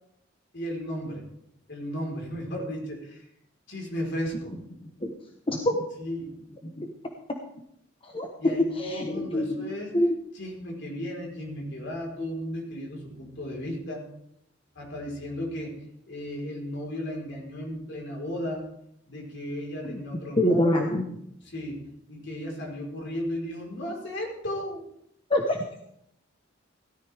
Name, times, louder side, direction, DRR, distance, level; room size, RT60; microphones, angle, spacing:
voice 1, 0.5-1.2 1.7-3.3 3.7-4.6 6.0-6.4 8.4-9.9 10.3-14.0 14.7-15.8 16.1-18.7 19.1-20.8 21.4-21.8 22.1-24.8, equal, 60° left, 0 dB, 4.4 m, -35 dB
voice 2, 4.8-5.1 5.5-5.8 6.8-6.9 8.1-8.3 8.8-9.7 9.9-10.1 19.8-20.0 20.4-21.0 25.3-25.6, left 1 dB, 30° left, 2 dB, 1.2 m, -25 dB
17.0 x 13.0 x 3.5 m, 0.74 s
head